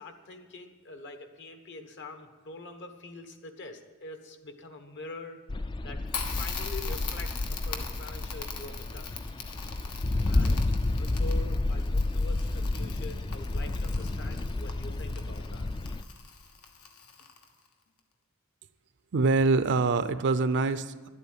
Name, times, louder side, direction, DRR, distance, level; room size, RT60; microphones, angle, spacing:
voice 1, 0.0-5.4 5.8-6.1 6.3-9.2 10.2-10.6 11.0-15.7, left 2 dB, 55° left, 7 dB, 1.2 m, -44 dB
sound 1, 5.5-16.0, left 2 dB, 20° left, 0.4 m, -30 dB
Crackle, 6.1-17.7, left 6 dB, 80° left, 1.4 m, -42 dB
voice 2, 19.1-21.1, right 3 dB, 55° right, 13 dB, 0.5 m, -25 dB
11.5 x 8.3 x 9.0 m, 1.4 s
head